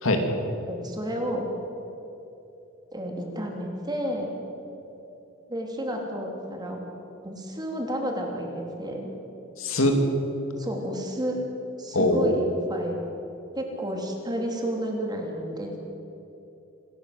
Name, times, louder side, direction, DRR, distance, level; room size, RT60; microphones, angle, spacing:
voice 1, 0.7-1.5 2.9-4.3 5.5-6.8 7.2-9.1 10.6-11.4 11.8-13.0 13.5-15.8, equal, 20° right, 1 dB, 3.2 m, -31 dB
voice 2, 9.6-10.0 11.9-12.3, left 1 dB, 75° left, 4 dB, 2.6 m, -22 dB
26.0 x 13.5 x 7.9 m, 3.0 s
head